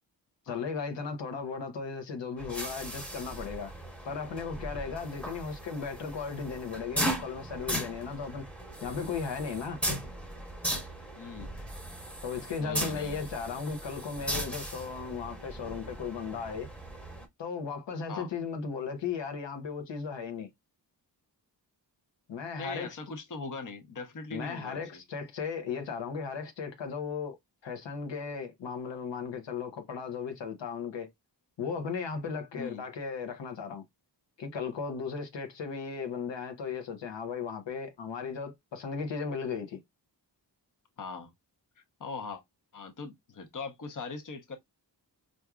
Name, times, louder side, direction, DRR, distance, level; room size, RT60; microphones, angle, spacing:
voice 1, 0.5-3.7 4.0-8.4 8.8-9.8 12.2-16.7 17.4-20.5 22.3-23.0 24.3-27.4 27.6-31.1 31.6-33.8 34.4-39.8, left 5 dB, 90° left, 0.8 m, -36 dB
train toilet flush, 2.4-17.3, right 1 dB, 5° left, 0.9 m, -37 dB
voice 2, 11.2-11.5 12.6-13.3 18.1-18.3 22.6-25.0 32.6-32.8 41.0-41.3 42.0-42.4 42.7-44.6, left 4 dB, 45° left, 0.8 m, -40 dB
4.6 x 2.6 x 2.3 m
wide cardioid pair, 75°, 43 cm